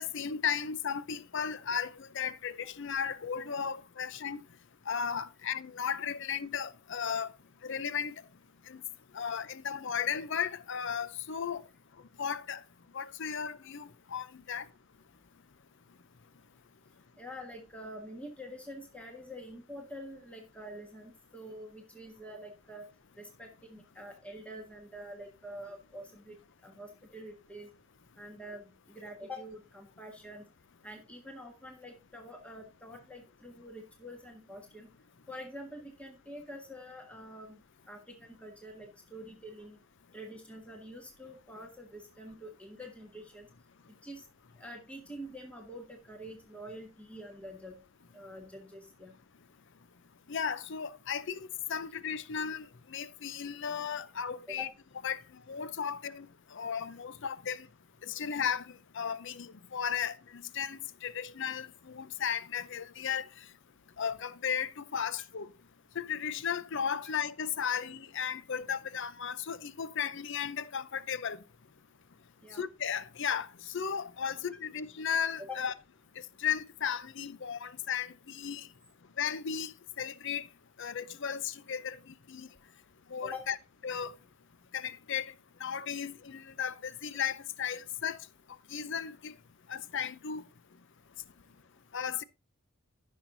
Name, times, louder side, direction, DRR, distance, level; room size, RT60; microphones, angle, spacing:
voice 1, 0.0-4.4 4.9-7.3 7.6-8.1 8.7-8.8 9.1-11.6 12.2-12.6 12.9-14.7 50.3-54.7 55.0-55.2 55.5-56.3 56.5-57.7 58.0-63.3 64.0-65.5 66.0-71.4 72.6-75.7 76.4-78.7 79.2-80.5 80.8-82.5 83.1-83.6 83.8-84.2 84.7-85.2 85.6-88.2 88.7-89.3 89.7-90.4 91.9-92.2, left 7 dB, 55° left, 0.6 m, -35 dB
voice 2, 17.2-22.9 23.2-27.7 28.2-30.4 30.8-34.9 35.3-37.6 37.9-39.8 40.1-43.5 44.0-44.2 44.6-47.8 48.1-49.1 54.5-54.7 72.4-72.6 74.2-74.3 75.4-75.6 83.2-83.4, equal, 5° left, 1.5 m, -46 dB
16.0 x 6.3 x 2.7 m
head